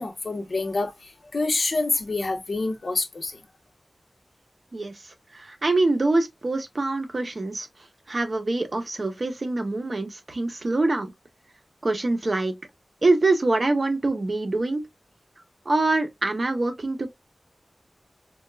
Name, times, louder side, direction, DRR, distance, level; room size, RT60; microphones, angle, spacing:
voice 1, 0.0-3.4, left 3 dB, 70° left, 0.8 m, -27 dB
voice 2, 4.7-7.7 8.1-11.1 11.8-12.5 13.0-14.8 15.7-17.1, right 2 dB, 55° right, 0.8 m, -24 dB
4.4 x 2.3 x 2.2 m
wide cardioid pair, 75°, 0 cm